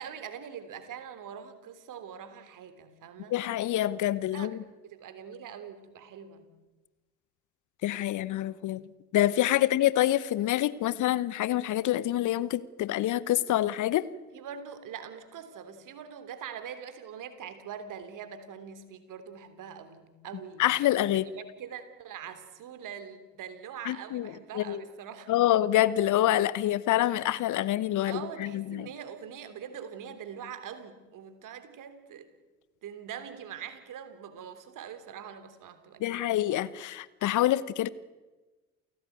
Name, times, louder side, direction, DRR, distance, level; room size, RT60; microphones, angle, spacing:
voice 1, 0.0-3.4 4.3-4.6 4.8-6.5 14.3-20.7 21.1-25.3 28.0-32.3 32.8-36.3, right 8 dB, 50° right, 10 dB, 3.5 m, -43 dB
voice 2, 3.3-4.6 7.8-8.8 9.1-14.1 20.6-21.3 23.8-24.8 25.3-28.9 36.0-37.9, left 13 dB, 50° left, 19 dB, 1.0 m, -26 dB
29.0 x 17.0 x 9.3 m, 1.2 s
figure-of-eight pair, 55°, 39 cm